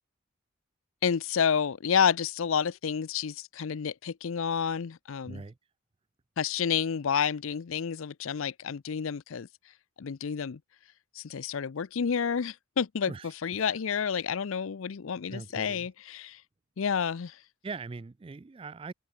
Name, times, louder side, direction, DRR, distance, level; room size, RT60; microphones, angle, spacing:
voice 1, 1.0-5.4 6.4-9.5 10.0-10.6 11.1-13.1 13.4-16.4 16.8-17.4, left 7 dB, 75° left, 0.5 m, -29 dB
voice 2, 5.2-5.6 13.1-13.8 15.3-15.9 17.6-18.9, right 4 dB, 25° right, 0.3 m, -41 dB
head